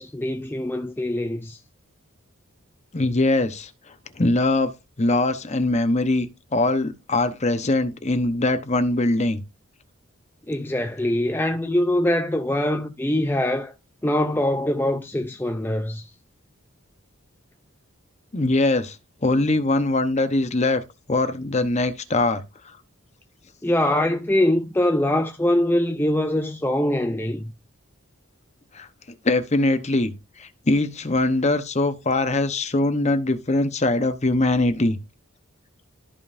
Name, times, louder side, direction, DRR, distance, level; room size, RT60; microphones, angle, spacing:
voice 1, 0.0-1.6 10.5-13.7 14.0-16.1 23.6-27.5, left 1 dB, 10° left, 0.6 m, -23 dB
voice 2, 2.9-3.7 4.2-4.7 5.0-9.4 18.3-19.0 19.2-20.8 21.1-22.4 28.7-28.9 29.2-30.1 30.4-35.0, left 2 dB, 35° left, 1.0 m, -22 dB
13.5 x 5.3 x 2.6 m
head